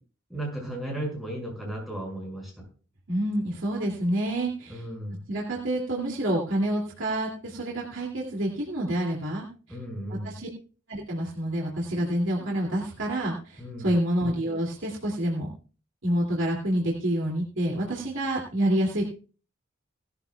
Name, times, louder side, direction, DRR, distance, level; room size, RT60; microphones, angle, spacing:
voice 1, 0.3-2.5 4.7-5.2 9.7-10.4 13.6-13.9, right 1 dB, ahead, -2 dB, 5.9 m, -35 dB
voice 2, 3.1-4.8 5.3-9.5 10.1-10.5 10.9-15.5 16.0-19.0, right 1 dB, 75° right, -2 dB, 2.5 m, -28 dB
18.0 x 13.0 x 2.3 m, 0.38 s
head